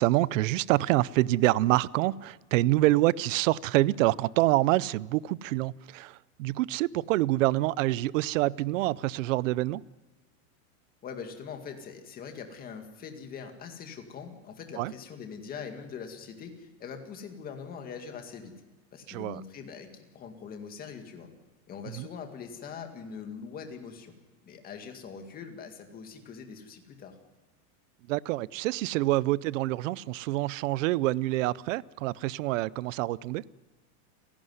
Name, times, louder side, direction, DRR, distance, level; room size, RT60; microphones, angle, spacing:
voice 1, 0.0-9.8 14.8-14.9 19.1-19.4 22.0-22.1 28.1-33.4, right 17 dB, 60° right, 22 dB, 0.6 m, -26 dB
voice 2, 11.0-18.6 18.9-21.3 21.7-24.1 24.4-27.2, left 6 dB, 20° left, 5 dB, 2.1 m, -42 dB
30.0 x 11.5 x 9.6 m, 1.3 s
supercardioid pair, 170°, 43 cm